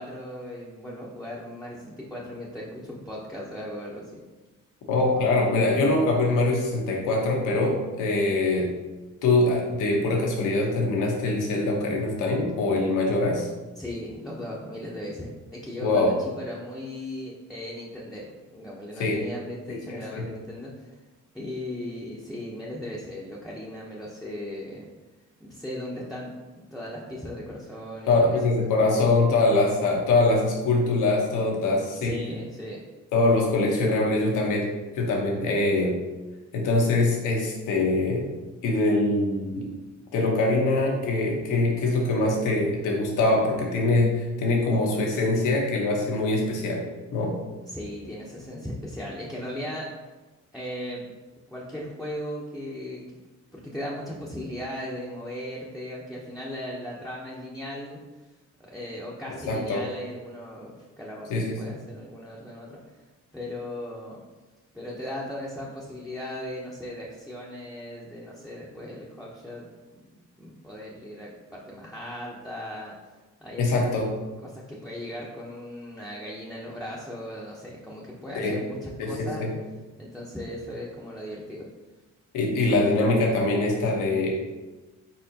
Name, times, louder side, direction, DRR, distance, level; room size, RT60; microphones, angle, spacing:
voice 1, 0.0-4.2 13.7-20.9 21.3-24.9 25.4-28.4 31.9-32.8 47.6-49.9 50.5-51.1 51.5-53.0 53.5-58.0 58.6-62.8 63.3-64.2 64.7-69.7 70.4-72.9 73.4-74.0 74.4-79.5 80.0-81.6, left 1 dB, ahead, -5 dB, 0.8 m, -37 dB
voice 2, 4.9-8.7 9.2-13.5 15.8-16.1 19.0-19.2 19.7-20.2 28.1-32.1 33.1-34.7 34.9-35.9 36.5-38.3 38.6-39.7 40.1-46.8 47.1-47.3 59.5-59.8 61.3-61.6 73.6-74.1 78.3-78.6 79.0-79.5 82.3-84.4, left 2 dB, 85° left, -1 dB, 1.1 m, -23 dB
4.3 x 4.3 x 2.8 m, 1.2 s
cardioid pair, 80°, 30 cm